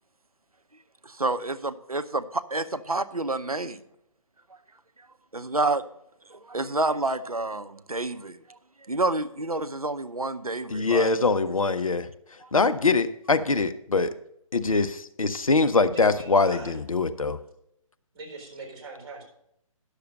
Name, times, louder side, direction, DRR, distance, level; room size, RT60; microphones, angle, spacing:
voice 1, 1.0-3.8 5.3-5.8 6.3-8.4 8.9-11.1 12.4-12.5, right 2 dB, 90° right, 12 dB, 0.6 m, -29 dB
voice 2, 10.7-12.1 12.5-14.1 14.5-17.4, left 3 dB, 70° left, 11 dB, 0.7 m, -23 dB
voice 3, 15.8-16.8 18.1-19.2, right 3 dB, 40° right, 0 dB, 3.9 m, -41 dB
10.5 x 6.7 x 5.3 m, 0.78 s
figure-of-eight pair, 140°, 18 cm